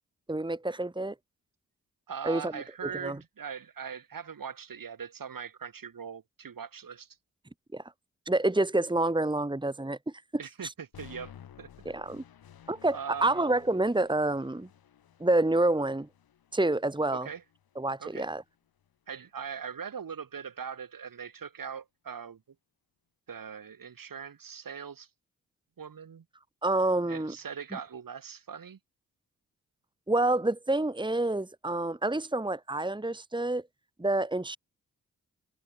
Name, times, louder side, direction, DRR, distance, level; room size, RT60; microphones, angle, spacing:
voice 1, 0.3-1.1 2.2-2.6 3.0-3.2 7.7-7.8 8.3-10.0 10.6-10.7 11.9-12.2 12.7-14.7 15.2-16.1 16.5-17.3 17.8-18.4 26.6-27.3 30.1-33.6 34.0-34.6, right 2 dB, 15° right, 2.0 m, -28 dB
voice 2, 2.1-7.2 10.4-11.3 11.6-11.9 12.9-13.4 17.1-17.4 18.0-18.3 19.1-22.4 23.3-25.1 25.8-26.2 27.1-28.8, right 7 dB, 65° right, 6.1 m, -41 dB
sound 1, 10.9-19.0, left 9 dB, 80° left, 6.1 m, -55 dB
supercardioid pair, 45°, 36 cm